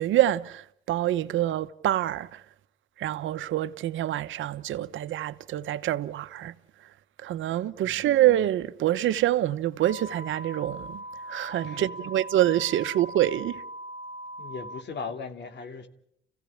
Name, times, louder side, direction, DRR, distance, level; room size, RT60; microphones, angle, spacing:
voice 1, 0.0-2.4 3.0-6.5 7.2-13.6, right 13 dB, 75° right, 1.0 m, -26 dB
voice 2, 7.8-8.2 11.6-12.1 14.4-15.9, left 5 dB, 60° left, 2.8 m, -38 dB
sound 1, 9.8-14.8, right 1 dB, 40° right, 1.4 m, -40 dB
29.5 x 16.0 x 8.6 m
cardioid pair, 90°, 20 cm